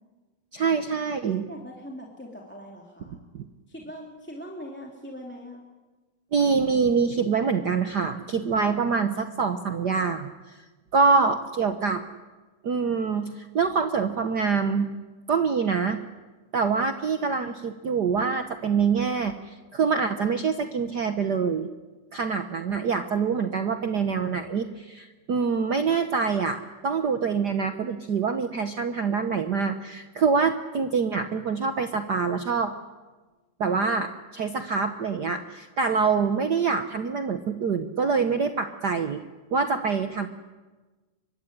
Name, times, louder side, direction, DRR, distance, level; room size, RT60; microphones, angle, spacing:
voice 1, 0.5-1.5 3.3-3.4 6.3-10.6 10.9-12.0 12.6-14.9 15.3-16.0 16.5-21.7 22.1-32.7 33.6-39.2 39.5-40.3, right 5 dB, 90° right, 8 dB, 0.9 m, -25 dB
voice 2, 1.5-3.2 3.7-5.6, equal, 5° left, -1 dB, 2.5 m, -41 dB
24.5 x 22.5 x 10.0 m, 1.3 s
omnidirectional pair, 3.4 m